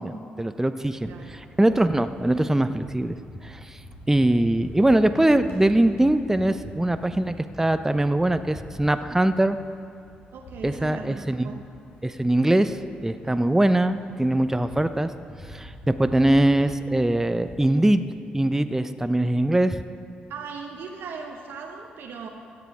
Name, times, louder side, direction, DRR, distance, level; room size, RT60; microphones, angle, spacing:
voice 1, 0.0-3.2 3.4-3.8 4.1-9.6 10.6-11.5 12.0-15.1 15.4-18.0 18.3-19.8, right 1 dB, 10° right, 10 dB, 0.5 m, -22 dB
sound 1, 1.0-17.6, equal, 75° left, 2.7 m, -46 dB
voice 2, 1.1-1.4 10.3-11.6 20.3-22.3, right 5 dB, 70° right, 2 dB, 0.9 m, -38 dB
15.5 x 6.9 x 4.8 m, 2.3 s
hypercardioid pair, 45°, 4 cm